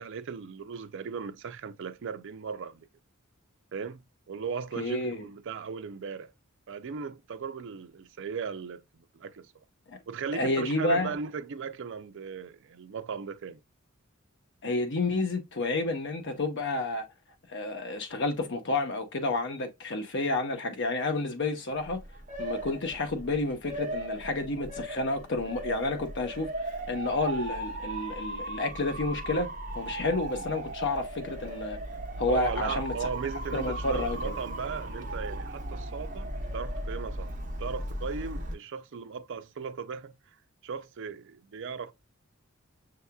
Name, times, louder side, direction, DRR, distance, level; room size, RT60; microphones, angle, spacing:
voice 1, 0.0-2.9 3.7-6.3 6.7-9.5 10.1-13.6 32.3-37.3 37.6-40.1 40.6-41.9, right 6 dB, 60° right, 0.4 m, -37 dB
voice 2, 4.8-5.2 9.9-10.0 10.3-11.1 14.6-17.1 17.5-22.0 22.4-31.8 32.2-32.9 33.5-34.3, left 2 dB, 55° left, 0.9 m, -30 dB
Motor vehicle (road) / Siren, 21.7-38.5, right 1 dB, 40° right, 0.9 m, -37 dB
6.3 x 2.9 x 2.2 m
head